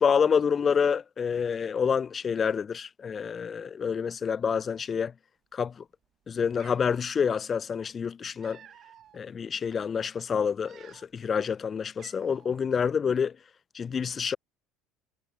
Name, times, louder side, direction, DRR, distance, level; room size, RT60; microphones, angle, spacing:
voice 1, 0.0-5.1 5.5-5.7 6.3-8.6 9.1-13.3 13.7-14.4, left 6 dB, 35° left, 1.3 m, -27 dB
Cat, 6.0-6.1 6.5-7.0 8.0-9.2 9.7-9.9 10.5-11.3 11.6-11.7 12.0-12.6, right 10 dB, 50° right, 7.5 m, -53 dB
hypercardioid pair, 75°, 0 cm